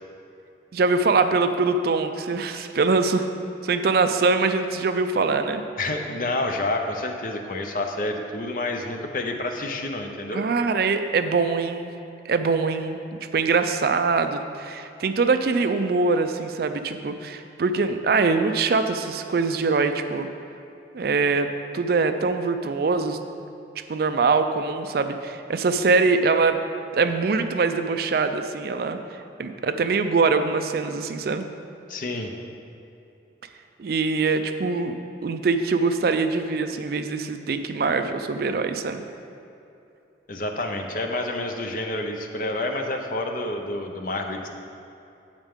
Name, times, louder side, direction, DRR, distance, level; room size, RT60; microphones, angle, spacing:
voice 1, 0.7-3.3 3.6-5.6 10.3-11.9 12.3-13.0 13.3-20.3 20.9-21.5 21.7-23.2 23.9-26.6 27.0-29.0 29.4-31.5 33.8-34.9 35.2-39.0, right 4 dB, 55° right, 8 dB, 0.4 m, -23 dB
voice 2, 5.8-10.4 31.9-32.3 40.3-44.5, left 2 dB, 45° left, 3 dB, 0.7 m, -29 dB
8.8 x 8.1 x 3.6 m, 2.8 s
head